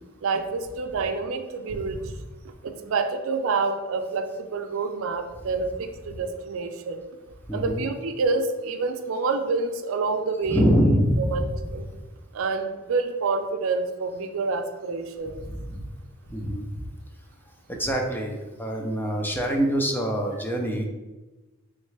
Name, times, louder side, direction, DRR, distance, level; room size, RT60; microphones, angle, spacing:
voice 1, 0.2-2.0 2.6-7.0 7.5-10.6 11.3-11.9 12.3-15.4, right 4 dB, 90° right, 7 dB, 0.4 m, -27 dB
voice 2, 1.7-2.1 7.5-7.9 10.5-11.5 15.4-15.9 16.3-16.7 17.7-20.9, equal, 10° left, 1 dB, 0.5 m, -25 dB
3.6 x 3.2 x 3.2 m, 1.1 s
head